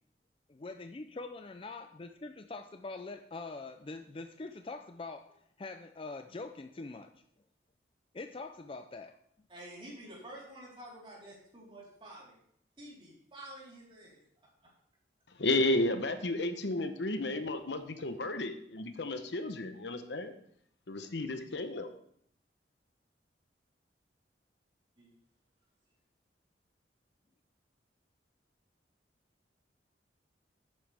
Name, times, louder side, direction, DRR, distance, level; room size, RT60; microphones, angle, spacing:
voice 1, 0.5-7.1 8.1-9.2, left 3 dB, 30° left, 7 dB, 0.5 m, -44 dB
voice 2, 9.5-12.4 12.8-14.2 14.6-14.7 25.0-25.1, right 1 dB, 30° right, -5 dB, 4.0 m, -49 dB
voice 3, 15.4-20.3 20.9-21.9, left 2 dB, 75° left, 8 dB, 1.0 m, -32 dB
11.5 x 8.8 x 3.5 m, 0.66 s
head